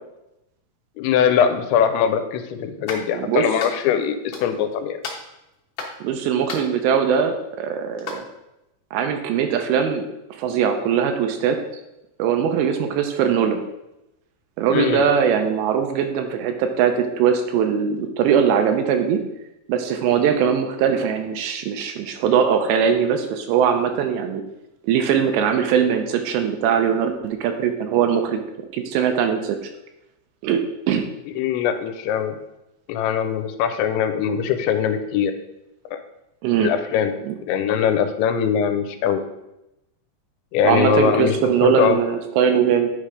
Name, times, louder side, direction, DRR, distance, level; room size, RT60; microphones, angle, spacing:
voice 1, 1.0-4.2 4.4-5.0 14.7-15.0 31.4-32.4 32.9-35.3 35.9-36.0 36.6-37.2 37.5-39.2 40.5-42.0, left 8 dB, 85° left, 8 dB, 2.9 m, -21 dB
sound 1, 2.9-3.1 3.6-4.0 4.3-4.7 5.0-6.0 6.5-6.8 7.9-8.2, left 4 dB, 65° left, 2.1 m, -33 dB
voice 2, 3.1-3.4 6.0-8.2 8.9-10.0 10.4-11.6 12.2-13.6 14.6-19.2 19.7-24.4 24.8-28.4 28.7-29.6 30.4-30.6 30.9-31.0 36.4-36.7 37.2-37.4 40.6-42.9, right 7 dB, 80° right, 6 dB, 2.7 m, -21 dB
9.8 x 3.3 x 4.9 m, 0.90 s
omnidirectional pair, 5.2 m